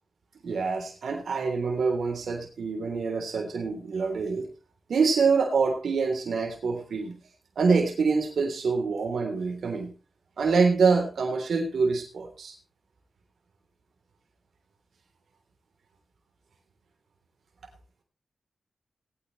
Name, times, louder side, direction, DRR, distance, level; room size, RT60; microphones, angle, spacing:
voice 1, 0.4-4.5 4.9-7.2 7.5-9.9 10.4-12.5, right 4 dB, 80° right, 2 dB, 3.4 m, -25 dB
19.5 x 9.2 x 3.2 m, 0.34 s
cardioid pair, 50°, 0 cm